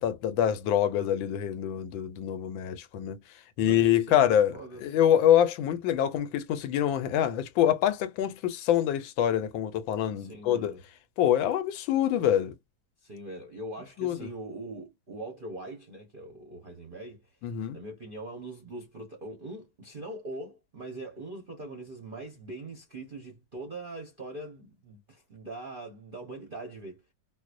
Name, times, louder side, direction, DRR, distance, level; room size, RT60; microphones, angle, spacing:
voice 1, 0.0-3.2 3.6-10.7 11.2-12.5 14.0-14.3 17.4-17.8, left 10 dB, 90° left, 1.4 m, -25 dB
voice 2, 3.6-4.8 10.1-10.8 13.0-17.3 17.7-27.0, right 2 dB, 45° right, 0.7 m, -42 dB
4.8 x 2.0 x 2.5 m
omnidirectional pair, 2.1 m